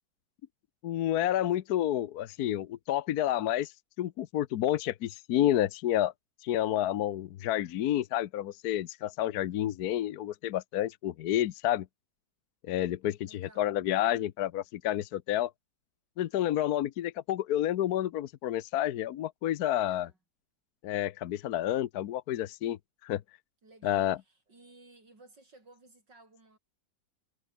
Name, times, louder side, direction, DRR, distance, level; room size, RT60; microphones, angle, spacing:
voice 1, 0.8-3.7 4.0-6.1 6.4-11.9 12.6-15.5 16.2-20.1 20.8-23.2 23.8-24.2, left 12 dB, 65° left, 1.2 m, -30 dB
voice 2, 13.2-13.8 19.8-20.2 23.6-26.6, right 2 dB, 85° right, 7.6 m, -57 dB
omnidirectional pair, 1.9 m